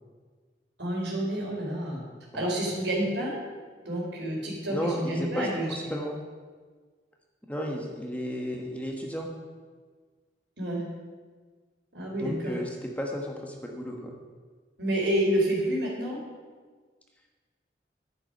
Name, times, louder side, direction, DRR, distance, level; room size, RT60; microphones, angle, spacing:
voice 1, 0.8-2.0 2.3-3.4 3.8-5.9 10.6-10.8 11.9-12.6 14.8-16.2, right 1 dB, 80° right, -2 dB, 3.8 m, -29 dB
voice 2, 4.7-6.2 7.5-9.3 12.2-14.2, equal, 10° left, 0 dB, 1.1 m, -33 dB
10.5 x 10.0 x 5.3 m, 1.5 s
head